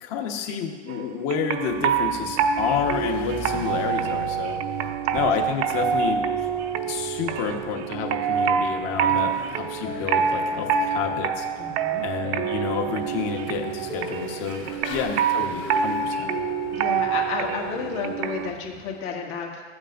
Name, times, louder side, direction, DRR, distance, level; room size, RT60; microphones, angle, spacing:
voice 1, 0.0-4.6 5.1-6.2 6.9-11.5 12.0-16.3, left 7 dB, 45° left, 3 dB, 1.2 m, -29 dB
sound 1, 0.9-18.5, right 7 dB, 60° right, 0.7 m, -26 dB
Bicycle / Mechanisms, 1.5-19.1, left 3 dB, 30° left, 1.4 m, -43 dB
sound 2, 5.7-18.0, left 2 dB, 10° left, 0.7 m, -42 dB
voice 2, 11.6-12.0 15.1-15.2 16.7-19.6, left 5 dB, 65° left, -1 dB, 2.1 m, -32 dB
14.0 x 8.7 x 2.5 m, 1.5 s
hypercardioid pair, 120°, 37 cm